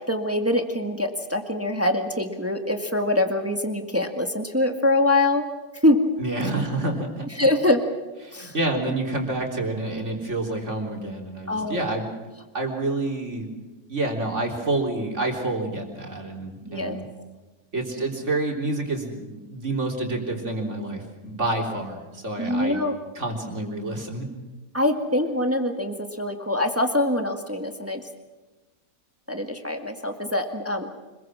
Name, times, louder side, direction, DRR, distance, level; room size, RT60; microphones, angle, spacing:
voice 1, 0.1-5.4 5.8-6.0 7.4-7.8 8.3-8.5 11.5-11.9 16.6-17.0 22.4-23.0 24.7-28.0 29.3-30.9, left 1 dB, 10° right, 5 dB, 1.8 m, -24 dB
voice 2, 6.2-7.3 8.2-12.1 12.5-13.5 13.9-17.0 17.7-22.8 23.2-24.3, right 2 dB, 50° right, 1 dB, 3.9 m, -28 dB
26.0 x 22.0 x 6.2 m, 1.2 s
omnidirectional pair, 1.6 m